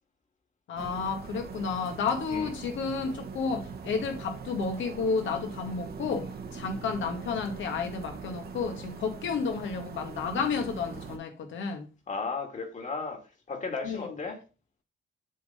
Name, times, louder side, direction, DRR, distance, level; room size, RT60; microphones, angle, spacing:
voice 1, 0.7-11.9 13.8-14.2, left 5 dB, 75° left, 1.9 m, -31 dB
sound 1, 0.8-11.2, right 5 dB, 50° right, 1.4 m, -42 dB
voice 2, 12.1-13.2 13.5-14.4, left 4 dB, 40° left, 2.3 m, -34 dB
7.5 x 3.7 x 5.6 m
cardioid pair, 90°, 20 cm